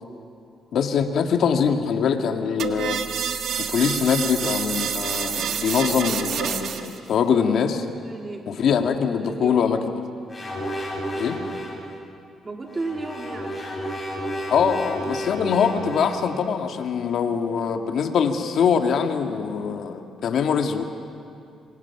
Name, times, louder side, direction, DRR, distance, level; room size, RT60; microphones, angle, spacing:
voice 1, 0.7-3.0 3.6-7.9 8.5-9.9 11.2-11.4 14.5-20.8, left 7 dB, 65° left, 5 dB, 1.9 m, -23 dB
sound 1, 2.6-7.0, right 8 dB, 75° right, 1.6 m, -28 dB
voice 2, 8.0-9.7 11.4-11.6 12.4-13.6, right 2 dB, 25° right, 1 dB, 3.6 m, -34 dB
sound 2, 10.3-11.9 12.7-16.3, equal, 25° left, 7.0 m, -32 dB
27.0 x 25.0 x 5.9 m, 2.5 s
cardioid pair, 90°, 0 cm